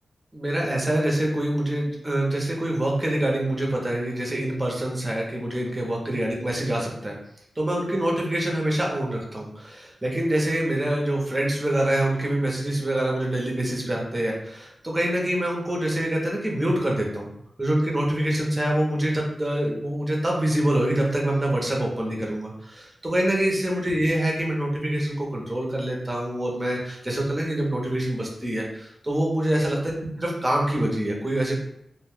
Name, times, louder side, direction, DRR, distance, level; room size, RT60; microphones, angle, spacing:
voice 1, 0.3-7.2 7.6-17.3 17.6-29.9 30.2-31.6, right 1 dB, 15° right, -1 dB, 0.7 m, -25 dB
2.5 x 2.2 x 3.5 m, 0.76 s
wide cardioid pair, 150°, 0 cm